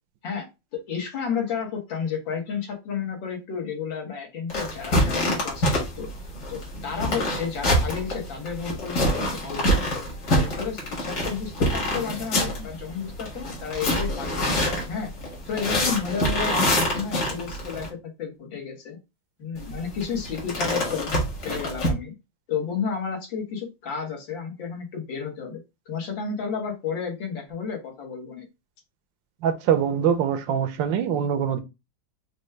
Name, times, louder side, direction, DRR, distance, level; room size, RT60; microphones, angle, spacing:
voice 1, 0.7-6.1 6.5-10.0 10.4-15.1 15.4-19.0 19.4-21.1 21.4-22.1 22.5-25.6 25.9-28.5, left 6 dB, 85° left, 2.0 m, -32 dB
sound 1, 4.5-17.9 19.6-21.9, equal, 60° left, 2.2 m, -26 dB
voice 2, 29.4-31.6, right 8 dB, 85° right, 1.3 m, -23 dB
5.1 x 2.2 x 3.1 m
omnidirectional pair, 2.0 m